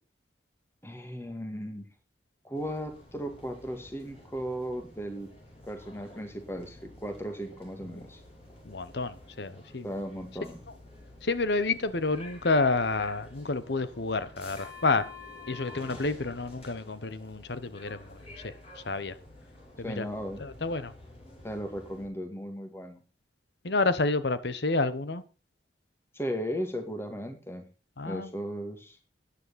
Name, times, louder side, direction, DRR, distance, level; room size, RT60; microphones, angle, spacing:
voice 1, 0.8-1.9 2.4-5.3 5.7-8.2 9.8-10.6 19.8-20.4 21.4-23.0 26.1-27.6 28.0-29.0, equal, 15° left, 6 dB, 2.1 m, -36 dB
sound 1, 2.5-22.1, left 2 dB, 35° left, 5.6 m, -50 dB
voice 2, 8.6-9.9 11.2-15.1 15.5-18.5 18.8-19.1 19.8-20.1 20.4-20.9 23.6-25.2 28.0-28.3, left 3 dB, 65° left, 14 dB, 1.0 m, -29 dB
13.0 x 9.9 x 4.2 m, 0.33 s
head